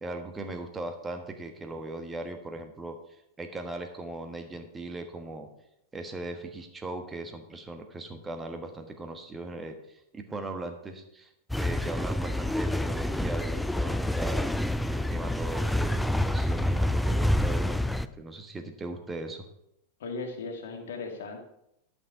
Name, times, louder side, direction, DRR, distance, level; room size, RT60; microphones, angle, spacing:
voice 1, 0.0-5.5 5.9-11.3 11.6-14.4 14.9-19.4, right 2 dB, 15° right, 5 dB, 1.4 m, -39 dB
sound 1, 11.5-18.1, left 1 dB, 5° left, 0.4 m, -27 dB
voice 2, 20.0-21.4, left 3 dB, 60° left, 3 dB, 2.0 m, -37 dB
11.5 x 6.4 x 4.7 m, 0.79 s
figure-of-eight pair, 90°, 0 cm